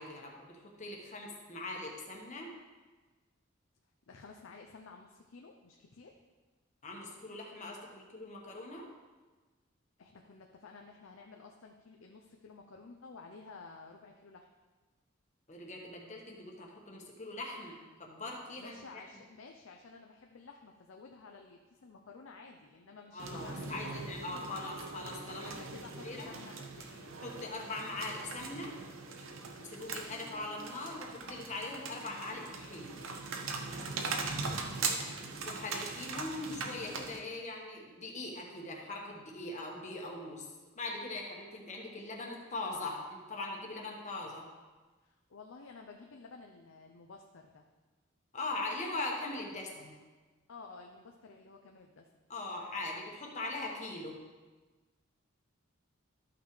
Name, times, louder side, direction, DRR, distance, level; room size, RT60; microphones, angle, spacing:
voice 1, 0.0-2.5 6.8-8.9 15.5-19.0 23.1-25.6 26.0-26.3 27.2-28.7 29.7-33.0 35.4-40.5 40.8-44.5 48.3-50.0 52.3-54.2, left 2 dB, 35° left, 0 dB, 1.3 m, -41 dB
voice 2, 4.1-6.2 10.0-14.5 18.6-24.0 24.3-24.7 25.6-27.1 34.5-35.2 45.0-47.6 50.5-52.1, left 4 dB, 90° left, 2 dB, 0.6 m, -53 dB
sound 1, 23.2-37.2, right 4 dB, 85° right, 0.9 m, -40 dB
12.5 x 5.8 x 3.2 m, 1.3 s
head